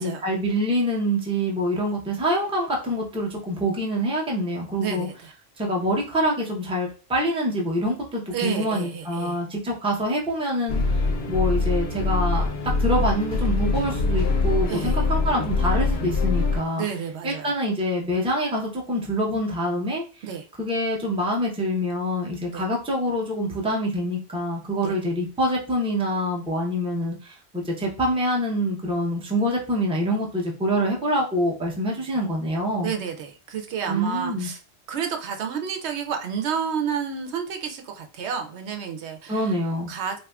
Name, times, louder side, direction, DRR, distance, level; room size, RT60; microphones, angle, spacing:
voice 1, 0.0-5.1 5.6-12.5 12.8-16.9 17.2-20.2 20.6-32.9 33.9-34.5 39.3-39.9, equal, 5° right, -2 dB, 0.6 m, -25 dB
voice 2, 4.8-5.3 8.3-9.4 14.7-15.0 16.8-17.5 20.2-20.5 22.5-22.6 24.8-24.9 32.8-34.6 34.9-39.4 39.9-40.2, right 7 dB, 80° right, 5 dB, 0.9 m, -30 dB
sound 1, 10.7-16.6, left 3 dB, 70° left, 0.9 m, -23 dB
3.5 x 2.7 x 2.2 m, 0.35 s
omnidirectional pair, 1.1 m